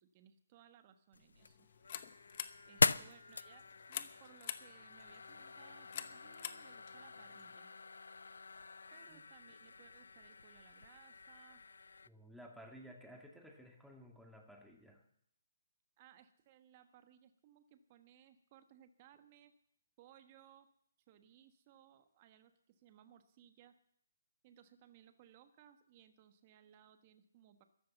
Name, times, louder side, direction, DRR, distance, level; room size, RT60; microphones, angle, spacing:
voice 1, 0.0-1.7 2.6-3.6 3.9-7.7 8.9-11.7 16.0-19.5 20.0-20.7 21.1-23.8 24.4-27.6, right 10 dB, 30° right, 9 dB, 1.4 m, -63 dB
sound 1, 1.1-12.1, left 4 dB, 85° left, 0.5 m, -41 dB
sound 2, 1.4-7.6, left 9 dB, 45° left, 1.0 m, -49 dB
voice 2, 12.1-15.0, equal, ahead, 1 dB, 1.9 m, -56 dB
14.0 x 11.5 x 7.1 m, 0.69 s
hypercardioid pair, 150°, 0 cm